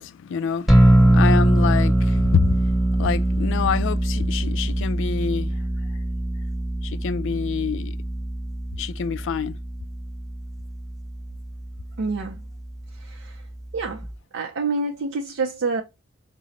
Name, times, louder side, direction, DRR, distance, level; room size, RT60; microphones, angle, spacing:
voice 1, 0.0-2.6 3.0-5.5 6.8-8.0 8.8-9.6, left 6 dB, 60° left, 0.3 m, -26 dB
sound 1, 0.7-14.1, right 1 dB, ahead, 0.8 m, -23 dB
voice 2, 12.0-12.4 13.0-13.4 13.7-14.1 14.3-15.8, right 3 dB, 60° right, 0.4 m, -27 dB
5.0 x 2.0 x 4.0 m
head